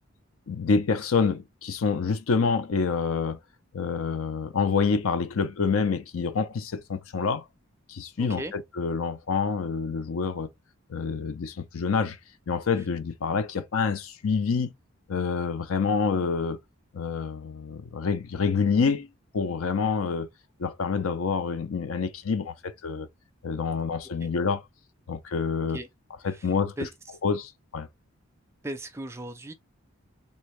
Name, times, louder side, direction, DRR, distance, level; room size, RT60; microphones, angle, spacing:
voice 1, 0.5-3.4 3.7-7.4 7.9-10.5 10.9-12.2 12.5-14.7 15.1-16.6 16.9-19.1 19.3-20.3 20.6-23.1 23.4-24.6 25.1-25.8 26.2-26.7 27.2-27.9, left 5 dB, 75° left, 0.5 m, -27 dB
voice 2, 8.2-8.5 24.2-24.3 25.7-25.9 26.3-26.5 26.8-26.9 28.6-29.5, right 1 dB, 10° right, 0.4 m, -36 dB
3.5 x 2.8 x 3.1 m
head